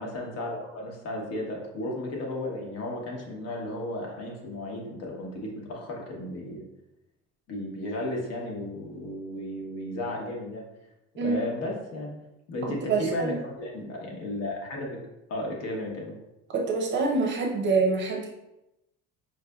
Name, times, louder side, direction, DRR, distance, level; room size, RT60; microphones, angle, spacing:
voice 1, 0.0-6.6 7.5-10.6 11.1-12.1 12.5-15.0 15.3-16.1, left 1 dB, 55° left, -1 dB, 1.0 m, -34 dB
voice 2, 12.6-13.4 16.5-18.3, right 4 dB, 35° right, 0 dB, 0.6 m, -26 dB
4.9 x 3.2 x 2.3 m, 0.91 s
cardioid pair, 170°, 31 cm